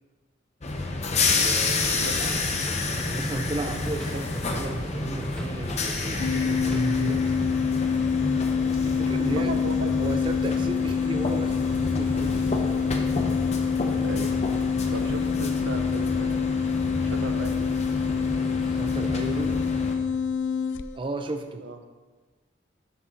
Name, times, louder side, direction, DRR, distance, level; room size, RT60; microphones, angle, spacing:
sound 1, 0.6-19.9, left 2 dB, 35° left, 0.7 m, -29 dB
sound 2, 1.0-2.0 2.3-3.5 3.7-4.7 5.0-6.8 7.1-8.0, equal, 5° left, 0.7 m, -39 dB
voice 1, 1.3-2.3 2.7-7.3 8.8-9.5 10.0-13.0 18.7-19.7 20.9-21.6, right 2 dB, 25° right, 6 dB, 0.4 m, -34 dB
sound 3, 6.2-21.0, left 6 dB, 70° left, 0.3 m, -26 dB
voice 2, 9.0-9.9 14.0-14.4 14.9-16.4 17.0-17.7 21.6-21.8, right 2 dB, 85° right, 6 dB, 0.8 m, -36 dB
12.5 x 4.2 x 3.8 m, 1.3 s
head